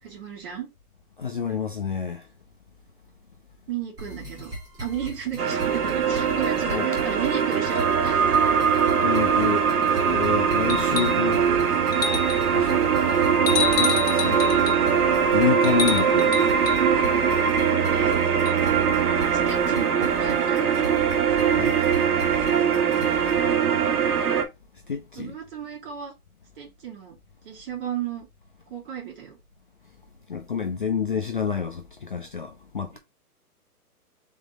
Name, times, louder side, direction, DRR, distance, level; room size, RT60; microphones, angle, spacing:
voice 1, 0.0-0.7 3.7-4.5 4.8-8.3 13.0-13.3 17.9-18.1 19.0-20.7 25.1-26.1 26.6-27.2 27.4-28.3 28.7-29.4 32.9-33.0, right 9 dB, 35° right, 2.5 m, -34 dB
voice 2, 1.2-2.2 6.7-6.9 9.0-9.7 10.1-11.5 12.5-12.8 13.5-14.5 15.3-16.4 21.6-22.0 23.1-23.2 24.9-25.3 30.3-33.0, left 6 dB, 35° left, 0.4 m, -28 dB
sound 1, 4.0-23.5, equal, 10° right, 1.1 m, -39 dB
sound 2, 5.4-24.4, right 7 dB, 75° right, 1.4 m, -22 dB
sound 3, 10.7-11.3 11.9-12.5 13.5-14.8 15.6-16.8 18.5-18.6, left 6 dB, 60° left, 1.3 m, -29 dB
4.0 x 3.7 x 3.5 m
hypercardioid pair, 155°, 46 cm